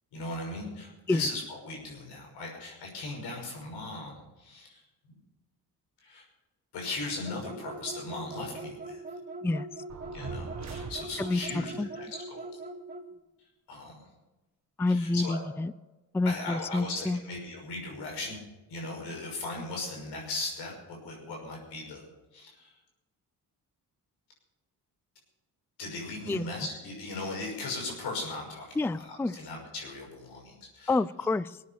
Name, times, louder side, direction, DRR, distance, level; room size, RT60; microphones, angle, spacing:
voice 1, 0.1-4.8 6.0-6.2 6.7-9.0 10.1-12.5 13.7-14.1 14.9-15.4 16.3-18.4 18.7-22.0 22.3-22.7 25.8-30.9, left 2 dB, 85° left, 0 dB, 6.1 m, -38 dB
sound 1, 7.2-13.1, right 2 dB, 20° right, 2.2 m, -41 dB
sound 2, 9.9-11.6, right 5 dB, 45° right, 1.8 m, -41 dB
voice 2, 11.2-11.9 14.8-15.7 16.1-17.2 26.3-26.5 28.8-29.4 30.9-31.6, left 2 dB, 5° left, 17 dB, 0.4 m, -28 dB
20.5 x 9.5 x 6.8 m, 1.1 s
cardioid pair, 70°, 39 cm